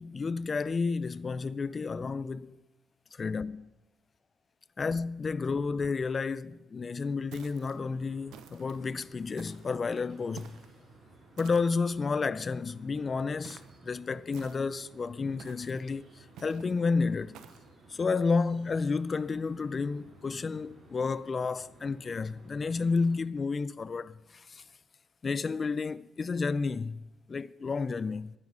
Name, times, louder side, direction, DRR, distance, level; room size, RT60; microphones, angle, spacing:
voice 1, 0.0-2.6 3.2-3.7 4.8-10.6 11.4-17.4 17.9-24.6 25.2-28.3, left 4 dB, 35° left, 0.5 m, -31 dB
sound 1, 7.3-23.2, right 2 dB, 50° right, 5.8 m, -57 dB
sound 2, 7.3-7.8 8.3-8.8 9.4-9.8 10.4-10.7 11.4-11.9 13.4-13.8 14.3-14.8 15.4-15.8 16.4-16.7 17.3-17.7, right 8 dB, 85° right, 0.9 m, -51 dB
13.0 x 9.7 x 5.5 m
cardioid pair, 90°, 0 cm